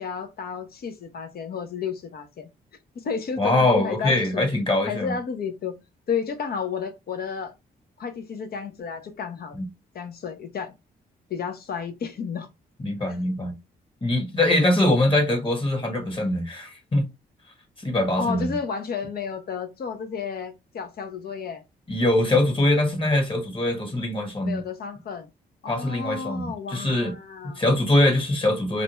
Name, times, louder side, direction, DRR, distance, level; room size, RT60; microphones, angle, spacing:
voice 1, 0.0-2.5 2.9-4.5 4.9-5.7 6.1-7.5 8.0-9.6 9.9-10.7 11.3-12.5 13.1-13.2 18.2-21.6 24.4-25.3 25.6-27.6, left 6 dB, 55° left, 0.7 m, -32 dB
voice 2, 3.4-5.1 9.6-9.7 12.8-13.5 14.0-17.1 17.8-18.5 21.9-24.6 25.7-27.1 27.6-28.8, left 1 dB, 30° left, 1.2 m, -23 dB
2.6 x 2.2 x 3.0 m
supercardioid pair, 55°, 18 cm